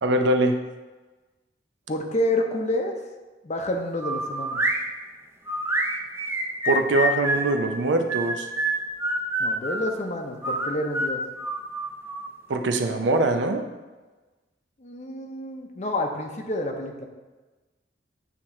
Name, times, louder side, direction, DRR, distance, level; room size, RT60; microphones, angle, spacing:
voice 1, 0.0-0.6 6.6-8.5 12.5-13.6, right 2 dB, 75° right, 5 dB, 0.6 m, -22 dB
voice 2, 1.9-2.9 3.4-4.6 9.4-11.2 14.8-17.1, left 1 dB, 40° left, 3 dB, 0.7 m, -28 dB
sound 1, 4.0-4.8 5.5-7.5 8.1-9.9 10.4-12.3, right 1 dB, 15° right, 0.5 m, -27 dB
8.4 x 3.0 x 4.3 m, 1.2 s
head